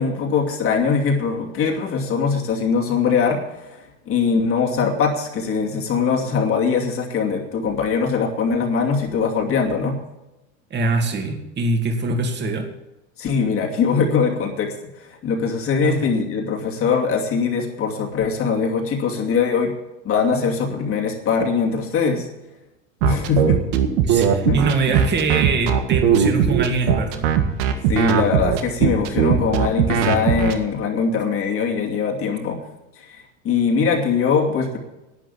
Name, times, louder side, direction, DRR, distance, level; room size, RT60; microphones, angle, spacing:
voice 1, 0.0-10.0 13.2-19.7 20.0-22.3 23.0-23.6 24.5-24.6 24.9-25.0 27.9-32.6 33.0-34.8, left 5 dB, 35° left, 1 dB, 2.6 m, -22 dB
voice 2, 10.7-12.7 15.8-16.1 24.0-27.3, right 3 dB, 25° right, 4 dB, 2.5 m, -23 dB
sound 1, 23.0-30.5, right 9 dB, 60° right, 1.9 m, -18 dB
11.5 x 9.1 x 8.2 m, 1.0 s
supercardioid pair, 135°, 40 cm